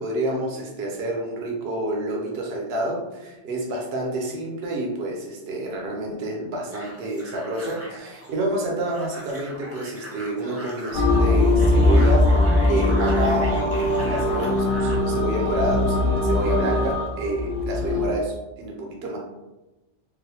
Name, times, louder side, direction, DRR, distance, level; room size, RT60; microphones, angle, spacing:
voice 1, 0.0-12.4 12.7-13.6 14.0-19.2, right 1 dB, 65° right, -1 dB, 0.9 m, -28 dB
sound 1, 6.7-15.1, equal, 20° right, 0.4 m, -40 dB
sound 2, 10.9-18.1, left 2 dB, 55° left, 0.7 m, -20 dB
3.9 x 2.2 x 2.8 m, 1.0 s
omnidirectional pair, 1.2 m